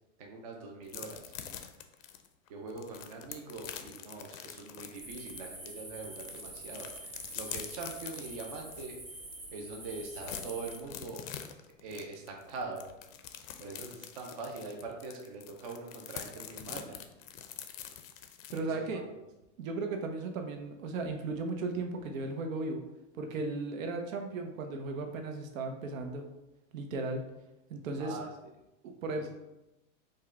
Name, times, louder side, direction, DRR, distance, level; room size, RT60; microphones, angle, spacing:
voice 1, 0.2-1.3 2.5-9.0 9.5-11.2 11.8-12.8 13.6-17.0 18.5-19.1 28.0-28.3 29.1-29.3, right 3 dB, 30° right, 0 dB, 0.4 m, -43 dB
sound 1, 0.9-5.7 6.0-8.9 9.3-9.4 9.7-18.6, left 9 dB, 75° left, 0.6 m, -45 dB
sound 2, 4.9-10.8, right 1 dB, 15° right, 0.8 m, -46 dB
voice 2, 18.5-19.0 19.6-22.8 23.2-26.3 26.7-27.2 27.7-28.2 28.8-29.3, right 3 dB, 80° right, 4 dB, 0.9 m, -36 dB
5.2 x 2.2 x 3.6 m, 0.96 s
supercardioid pair, 170°, 39 cm